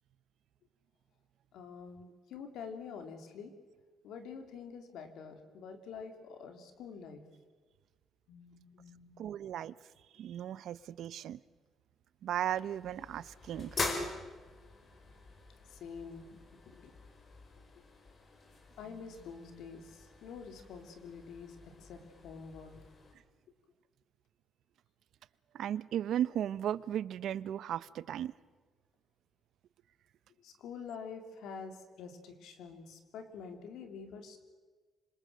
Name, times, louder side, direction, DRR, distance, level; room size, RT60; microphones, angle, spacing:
voice 1, 1.5-3.5 4.0-7.2 8.3-9.2 15.7-16.3 16.7-16.9 18.8-22.7 30.4-34.4, left 6 dB, 85° left, 7 dB, 3.6 m, -47 dB
voice 2, 9.2-9.7 10.2-11.4 12.2-13.8 25.5-28.3, right 10 dB, 75° right, 18 dB, 0.8 m, -36 dB
sound 1, 12.3-23.1, left 3 dB, 45° left, 5.7 m, -44 dB
26.5 x 26.0 x 7.7 m, 1.4 s
cardioid pair, 90°, 0 cm